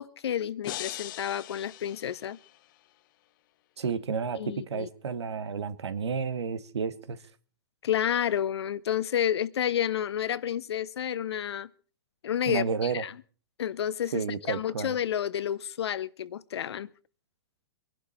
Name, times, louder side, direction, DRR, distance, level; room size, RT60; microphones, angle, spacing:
voice 1, 0.0-2.4 4.3-4.9 7.8-11.7 12.2-13.1 13.6-16.9, left 10 dB, 75° left, 1.0 m, -30 dB
sound 1, 0.6-2.8, left 15 dB, 50° left, 1.1 m, -41 dB
voice 2, 3.8-7.2 12.5-13.0 14.1-14.9, right 6 dB, 85° right, 1.6 m, -31 dB
24.0 x 11.5 x 4.3 m
hypercardioid pair, 145°, 14 cm